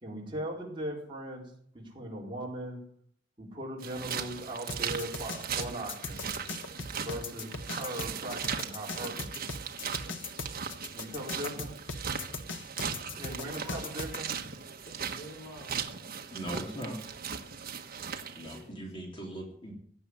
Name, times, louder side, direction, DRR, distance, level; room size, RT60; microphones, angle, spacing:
voice 1, 0.0-2.8 3.4-6.3 7.0-9.3 10.9-11.8 13.2-14.3, right 1 dB, 25° right, -3 dB, 4.5 m, -39 dB
sound 1, 3.8-18.6, right 6 dB, 50° right, 1.4 m, -38 dB
sound 2, 4.7-14.2, left 4 dB, 80° left, 1.4 m, -39 dB
voice 2, 12.9-14.0 14.9-16.2 18.4-18.8, equal, 65° left, -1 dB, 5.1 m, -49 dB
voice 3, 16.3-17.0 18.4-19.7, right 1 dB, 30° left, -1 dB, 3.3 m, -39 dB
17.0 x 7.1 x 9.9 m, 0.63 s
head